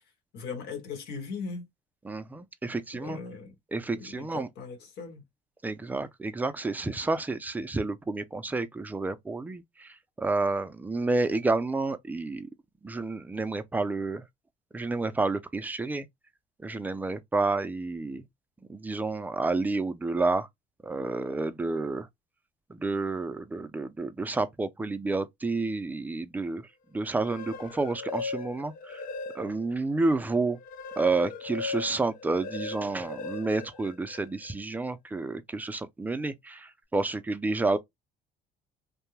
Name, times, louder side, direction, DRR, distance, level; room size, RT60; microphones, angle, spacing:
voice 1, 0.3-1.7 2.9-3.6 3.9-5.2, left 5 dB, 80° left, 1.3 m, -39 dB
voice 2, 2.0-3.2 3.7-4.5 5.6-12.5 12.8-14.2 14.7-16.1 16.6-18.2 18.7-20.5 20.8-22.1 22.7-26.6 26.9-29.0 29.3-30.6 31.0-37.8, right 3 dB, 10° right, 0.4 m, -30 dB
sound 1, 27.1-29.8 30.2-34.5, left 4 dB, 55° left, 0.4 m, -39 dB
2.6 x 2.2 x 3.1 m
cardioid pair, 110°, 17 cm